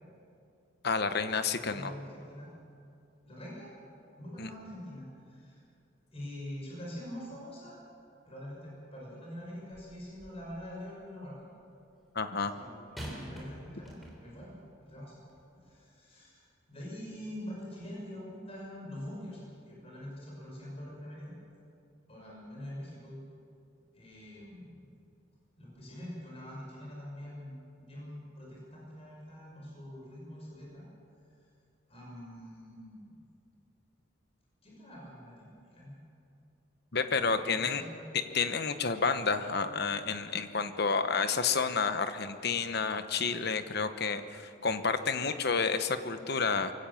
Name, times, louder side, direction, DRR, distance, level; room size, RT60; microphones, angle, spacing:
voice 1, 0.8-1.9 4.4-4.5 12.1-12.5 36.9-37.8 38.1-46.7, left 5 dB, 50° left, 9 dB, 1.0 m, -30 dB
voice 2, 1.6-2.5 3.2-3.7 4.2-5.6 6.1-7.8 8.3-11.3 12.4-14.5 14.8-15.2 15.5-19.4 19.7-21.3 22.1-23.2 23.9-24.9 25.6-27.6 27.9-30.8 31.9-33.2 34.6-36.0 37.4-38.0, left 1 dB, 30° left, -3 dB, 6.0 m, -45 dB
sound 1, 9.7-10.5 13.0-14.5 15.3-15.4, equal, ahead, 3.6 m, -45 dB
23.5 x 17.0 x 7.2 m, 2.5 s
head